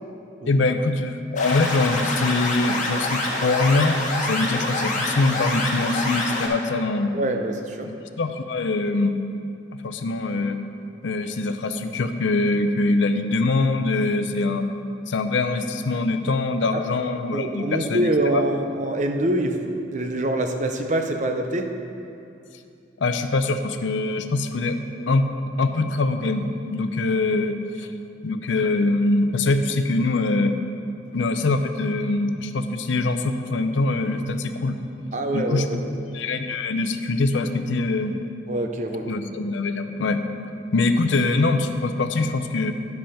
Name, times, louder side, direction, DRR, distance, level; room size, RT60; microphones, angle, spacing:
voice 1, 0.5-7.1 7.8-9.2 9.7-10.6 11.0-14.6 15.1-18.4 23.0-24.8 25.1-25.3 25.6-27.9 28.2-30.5 31.1-34.8 35.3-35.7 36.1-38.1 39.1-40.2 40.7-42.7, left 3 dB, 75° left, 8 dB, 0.5 m, -23 dB
sound 1, 1.4-6.5, left 2 dB, 40° left, 1.7 m, -26 dB
voice 2, 7.1-7.9 16.7-16.8 17.3-21.8 35.1-35.9 38.5-39.2, right 1 dB, 40° right, 5 dB, 0.6 m, -25 dB
10.5 x 5.4 x 5.6 m, 2.6 s
head